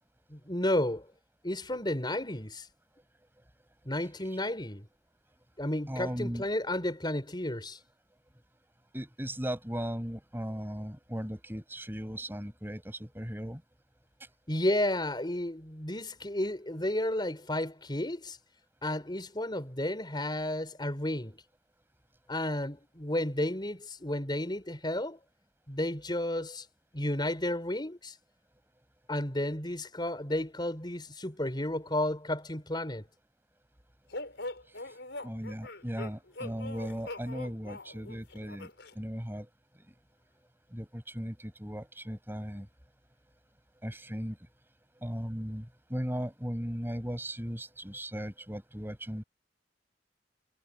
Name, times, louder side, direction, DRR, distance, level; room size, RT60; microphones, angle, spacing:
voice 1, 0.3-1.1 1.4-2.7 3.8-4.8 5.6-7.8 14.5-18.4 18.8-21.4 22.3-25.2 25.7-26.7 26.9-28.1 29.1-33.0, left 1 dB, 25° left, 5.1 m, -32 dB
voice 2, 5.9-6.4 8.9-13.6 35.2-38.7 39.0-39.5 40.7-42.7 43.8-44.4 45.0-49.2, equal, 10° right, 5.7 m, -37 dB
sound 1, 34.1-38.9, left 2 dB, 70° left, 5.6 m, -42 dB
head